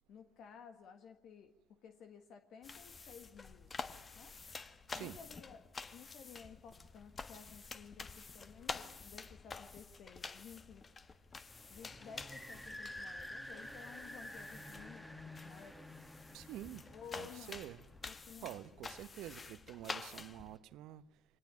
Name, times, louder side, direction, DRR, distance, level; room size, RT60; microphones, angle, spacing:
voice 1, 0.1-3.7 4.1-4.4 4.9-10.8 11.7-15.9 16.9-17.7 18.0-18.6 19.2-19.3, left 7 dB, 60° left, 1.6 m, -55 dB
sound 1, 2.6-20.6, left 4 dB, 35° left, 1.4 m, -49 dB
sound 2, 11.5-18.8, left 1 dB, 5° left, 2.1 m, -51 dB
voice 2, 16.3-16.9 17.1-17.8 18.4-21.0, right 13 dB, 70° right, 0.9 m, -48 dB
24.0 x 19.0 x 9.5 m
hypercardioid pair, 65°, 0 cm